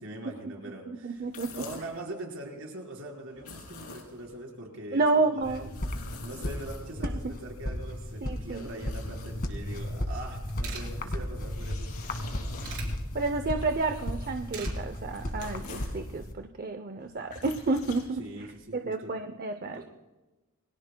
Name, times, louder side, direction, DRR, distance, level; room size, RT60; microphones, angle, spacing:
voice 1, 0.0-5.6 6.2-11.9 18.2-19.1 19.7-19.8, right 1 dB, 60° right, 0 dB, 4.1 m, -42 dB
voice 2, 0.9-1.6 4.9-5.8 7.0-7.3 8.2-8.7 13.1-18.2 18.7-19.8, right 3 dB, 40° right, 7 dB, 0.6 m, -30 dB
sound 1, 1.2-2.0 3.3-4.4 5.4-7.2 7.9-9.7 11.1-16.0 17.0-18.6, left 3 dB, 80° left, 3.5 m, -47 dB
sound 2, 5.4-16.3, left 1 dB, 45° left, 1.8 m, -35 dB
sound 3, 10.1-10.2 10.4-10.9 12.1-12.9 14.2-14.7 15.1-15.4, right 6 dB, 85° right, 3.7 m, -41 dB
28.5 x 22.0 x 2.2 m, 1.1 s
head